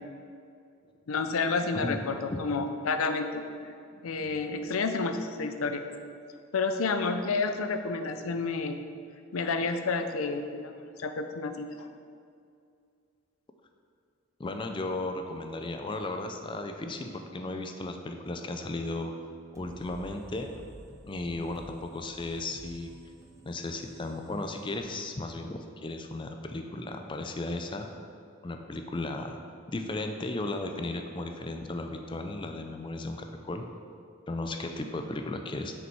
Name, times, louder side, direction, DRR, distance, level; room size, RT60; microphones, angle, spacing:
voice 1, 1.1-3.4 4.0-5.8 6.5-8.8 9.3-11.9, left 4 dB, 80° left, 7 dB, 0.5 m, -30 dB
voice 2, 3.9-4.7 14.4-19.1 19.5-20.5 21.1-22.9 23.4-27.9 28.4-29.4 29.7-33.6 34.3-35.7, left 2 dB, 25° left, 5 dB, 0.4 m, -35 dB
sound 1, 19.5-25.2, equal, 15° right, 0.7 m, -51 dB
6.4 x 5.1 x 4.6 m, 2.4 s
head